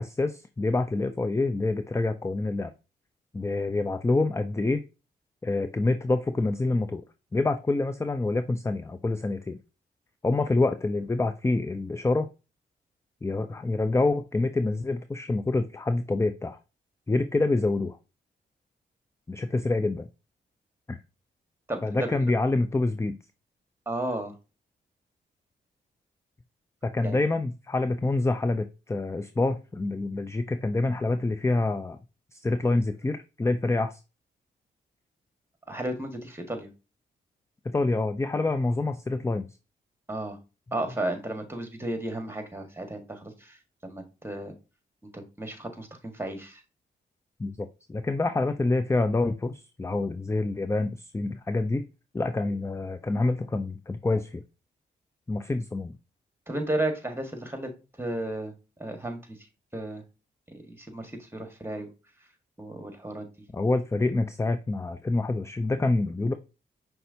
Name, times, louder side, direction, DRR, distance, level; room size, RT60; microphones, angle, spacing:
voice 1, 0.0-2.7 3.3-4.8 5.4-7.0 7.3-9.6 10.2-12.3 13.2-16.6 17.1-18.0 19.3-20.1 20.9-21.0 21.8-23.2 26.8-32.0 32.3-34.0 37.6-39.5 47.4-51.9 52.1-54.4 55.3-55.9 63.5-66.4, left 2 dB, 15° left, 10 dB, 0.4 m, -27 dB
voice 2, 21.7-22.2 23.8-24.3 27.0-27.2 35.7-36.7 40.1-40.4 40.7-43.6 43.8-44.5 45.1-46.6 56.5-57.7 58.0-58.5 58.8-59.4 59.7-60.0 60.6-61.9 62.6-63.3, right 1 dB, 10° right, 5 dB, 1.6 m, -33 dB
5.4 x 3.4 x 2.7 m, 0.29 s
supercardioid pair, 45°, 20 cm